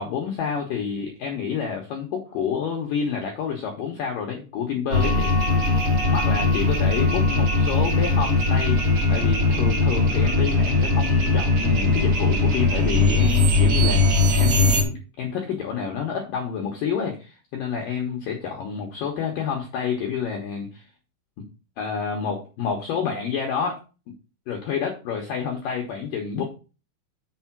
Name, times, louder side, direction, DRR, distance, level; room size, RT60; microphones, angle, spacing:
voice 1, 0.0-5.6 6.1-8.8 9.1-20.8 21.4-21.5 21.8-23.8 24.5-26.4, left 7 dB, 75° left, 1 dB, 2.0 m, -28 dB
sound 1, 4.9-14.8, left 2 dB, 60° right, 1.5 m, -20 dB
6.9 x 4.5 x 6.0 m, 0.33 s
omnidirectional pair, 5.6 m